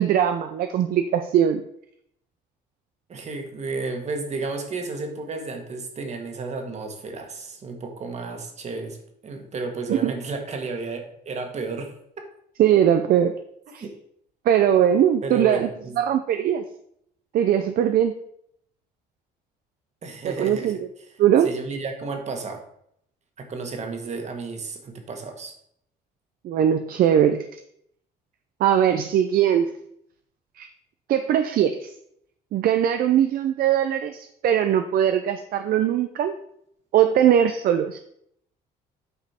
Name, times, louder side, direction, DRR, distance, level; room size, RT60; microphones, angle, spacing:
voice 1, 0.0-1.6 9.9-10.1 12.6-13.3 13.7-13.8 14.5-15.7 16.0-16.6 17.3-18.2 20.2-20.8 21.2-21.5 26.4-27.4 28.6-29.7 30.6-30.7 31.1-31.9 32.5-36.3 36.9-38.0, right 10 dB, 60° right, 8 dB, 0.6 m, -20 dB
voice 2, 3.1-11.9 13.8-13.9 15.2-15.9 20.0-22.6 23.4-25.5, right 3 dB, 40° right, 4 dB, 1.7 m, -32 dB
8.6 x 5.1 x 4.3 m, 0.71 s
cardioid pair, 110°, 17 cm